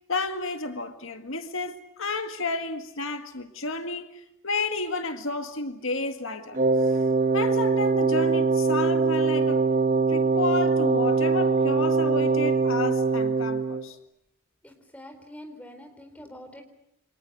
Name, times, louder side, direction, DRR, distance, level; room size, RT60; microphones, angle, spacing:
voice 1, 0.1-6.6 7.3-9.6 10.1-14.0, left 3 dB, 70° left, 1.9 m, -31 dB
Wind instrument woodwind instrument, 6.5-13.9, right 4 dB, 35° right, 1.2 m, -22 dB
voice 2, 14.6-16.6, equal, 5° left, 4.1 m, -45 dB
29.0 x 25.0 x 8.1 m
head